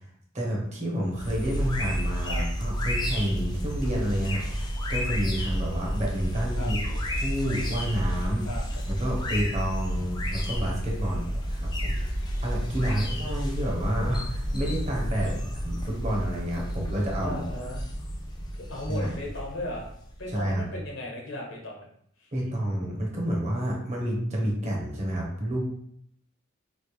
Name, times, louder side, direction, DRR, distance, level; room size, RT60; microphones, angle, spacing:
voice 1, 0.3-4.4 4.9-8.5 8.9-12.0 12.4-15.3 15.6-17.4 18.9-19.1 20.3-20.6 22.3-25.8, equal, 35° right, -2 dB, 0.9 m, -29 dB
sound 1, 1.1-20.6, equal, 20° left, 0.5 m, -31 dB
voice 2, 11.0-11.4 12.7-13.4 15.2-15.4 17.2-17.8 18.7-19.9 20.2-21.9 22.2-22.3, left 1 dB, 80° left, -1 dB, 1.1 m, -37 dB
3.2 x 2.5 x 3.0 m, 0.68 s
head